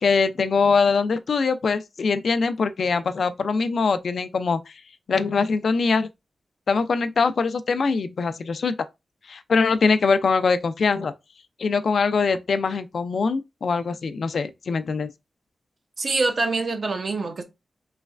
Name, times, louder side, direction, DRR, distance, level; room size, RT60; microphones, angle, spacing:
voice 1, 0.0-4.7 5.1-6.1 6.7-8.7 9.3-11.1 11.6-15.1, left 4 dB, 65° left, 0.3 m, -22 dB
voice 2, 16.0-17.4, right 3 dB, 50° right, 0.6 m, -25 dB
3.1 x 3.1 x 2.4 m
wide cardioid pair, 120°, 0 cm